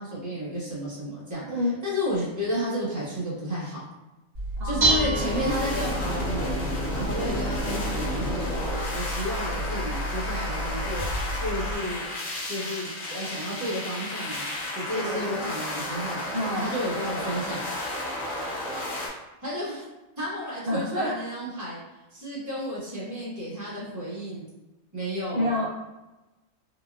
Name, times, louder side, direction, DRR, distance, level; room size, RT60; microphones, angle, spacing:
voice 1, 0.0-3.8 4.6-6.6 6.9-12.0 12.5-14.4 14.7-16.2 16.6-17.6 19.4-19.8 20.2-21.8 22.1-24.4 24.9-25.5, equal, 15° right, -9 dB, 1.1 m, -32 dB
Dishes pots and pans, 4.3-11.7, right 1 dB, 40° right, 1.7 m, -30 dB
voice 2, 4.6-5.2 15.0-15.3 16.3-16.7 20.7-21.1 25.3-25.7, left 1 dB, 65° right, -6 dB, 0.4 m, -28 dB
sound 1, 5.1-19.1, left 1 dB, 80° left, 1.2 m, -32 dB
3.9 x 2.2 x 2.3 m, 1.1 s
omnidirectional pair, 1.4 m